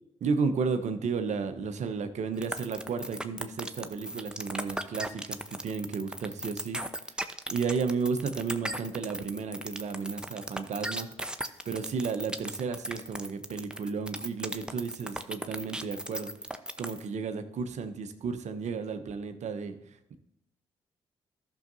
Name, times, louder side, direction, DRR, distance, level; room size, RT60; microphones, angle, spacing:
voice 1, 0.2-5.4 5.6-6.8 7.5-11.1 11.7-16.3 16.8-19.7, right 5 dB, 60° right, 8 dB, 0.9 m, -33 dB
sound 1, 2.4-17.1, right 1 dB, 5° right, 0.8 m, -36 dB
14.5 x 6.5 x 2.7 m, 0.79 s
hypercardioid pair, 45°, 14 cm